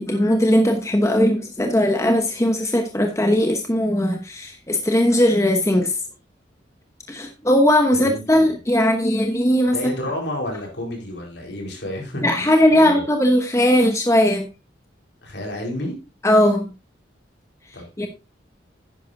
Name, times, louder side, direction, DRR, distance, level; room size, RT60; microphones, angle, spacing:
voice 1, 0.0-6.0 7.1-9.9 12.2-14.5 16.2-16.7 18.0-18.1, left 1 dB, 15° left, 4 dB, 1.0 m, -18 dB
voice 2, 7.9-8.5 9.7-13.1 15.2-15.9 17.7-18.1, left 1 dB, 65° left, 1 dB, 4.5 m, -31 dB
10.5 x 10.5 x 2.7 m, 0.26 s
head